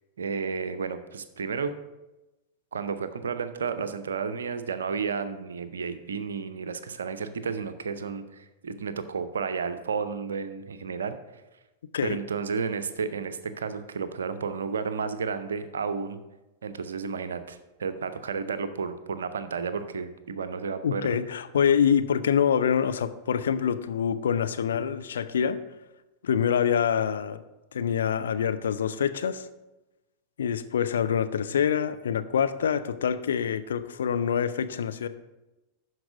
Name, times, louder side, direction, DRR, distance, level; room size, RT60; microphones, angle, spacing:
voice 1, 0.2-1.7 2.7-11.2 12.0-16.2 16.6-21.2, right 5 dB, 70° right, 11 dB, 0.6 m, -32 dB
voice 2, 20.8-25.6 26.2-27.4 27.7-29.5 30.4-35.1, left 8 dB, 65° left, 11 dB, 0.5 m, -25 dB
12.0 x 4.7 x 4.9 m, 1.0 s
figure-of-eight pair, 90°, 0 cm